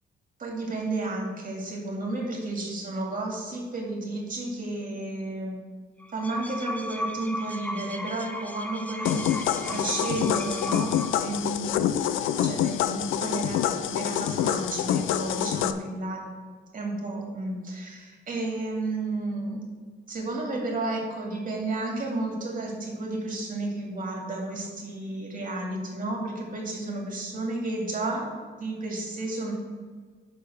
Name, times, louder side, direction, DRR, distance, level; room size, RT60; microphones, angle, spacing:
voice 1, 0.4-5.6 6.1-11.8 12.4-16.2 16.7-19.6 20.1-29.5, right 2 dB, 45° right, -1 dB, 2.3 m, -32 dB
sound 1, 6.0-11.4, equal, 5° left, 0.7 m, -36 dB
sound 2, 9.0-15.7, left 11 dB, 85° left, 0.5 m, -27 dB
5.9 x 5.5 x 6.4 m, 1.5 s
cardioid pair, 90°, 20 cm